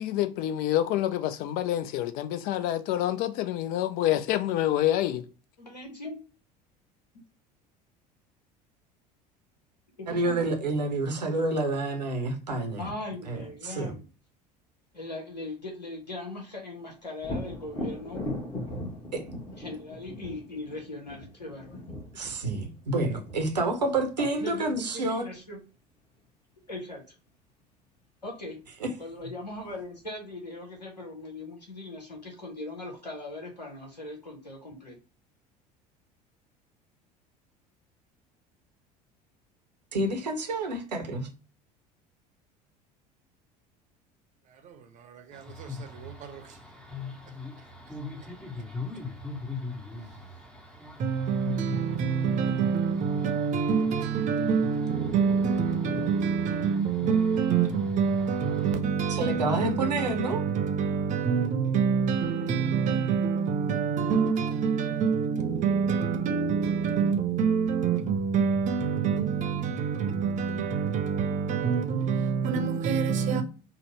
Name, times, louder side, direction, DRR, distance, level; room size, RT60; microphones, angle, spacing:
voice 1, 0.0-5.3, left 12 dB, 45° left, 0.4 m, -27 dB
voice 2, 5.6-6.2 10.0-10.4 12.8-14.0 14.9-18.2 19.6-21.8 24.2-25.6 26.7-27.0 28.2-28.6 29.0-35.0, left 2 dB, 80° left, 1.0 m, -39 dB
voice 3, 10.1-12.9 13.3-14.0 19.1-19.2 22.1-25.3 28.8-28.9 39.9-41.3 59.1-60.4, right 2 dB, 80° right, 0.8 m, -29 dB
Thunder, 17.2-24.9 28.5-28.6 29.1-30.0, left 1 dB, 25° left, 1.1 m, -39 dB
voice 4, 44.6-46.4 51.0-73.4, right 6 dB, 35° right, 0.7 m, -26 dB
sound 1, 45.3-58.8, left 3 dB, 5° left, 0.7 m, -42 dB
3.8 x 2.1 x 4.0 m
figure-of-eight pair, 65°, 21 cm